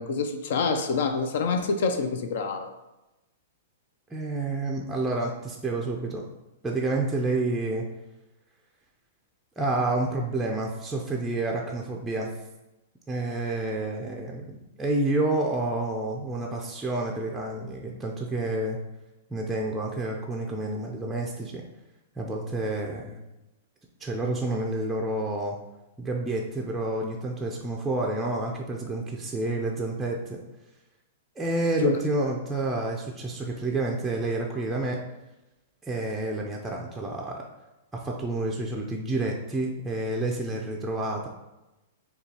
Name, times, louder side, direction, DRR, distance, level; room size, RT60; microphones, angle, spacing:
voice 1, 0.0-2.7 31.8-32.0, left 4 dB, 65° left, 6 dB, 0.4 m, -26 dB
voice 2, 4.1-6.2 6.6-7.9 9.6-12.3 13.1-18.8 19.3-21.6 22.2-23.2 24.0-25.6 26.0-30.4 31.4-35.0 35.8-37.4 37.9-41.3, right 2 dB, 10° right, 0 dB, 0.4 m, -29 dB
6.7 x 2.3 x 2.8 m, 1.0 s
hypercardioid pair, 140°, 0 cm